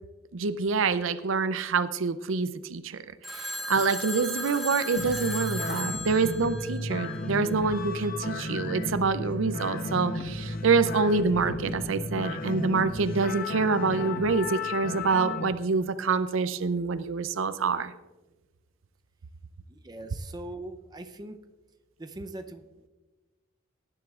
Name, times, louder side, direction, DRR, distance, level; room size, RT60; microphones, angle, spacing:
voice 1, 0.3-3.0 3.3-17.9, right 4 dB, 70° right, 13 dB, 0.5 m, -26 dB
Telephone, 3.2-7.5, equal, ahead, 1.2 m, -36 dB
sound 1, 5.0-15.5, left 2 dB, 45° left, 0.9 m, -34 dB
voice 2, 19.7-21.4 22.0-22.9, right 1 dB, 20° right, 6 dB, 0.6 m, -41 dB
18.5 x 11.0 x 2.4 m, 1.2 s
head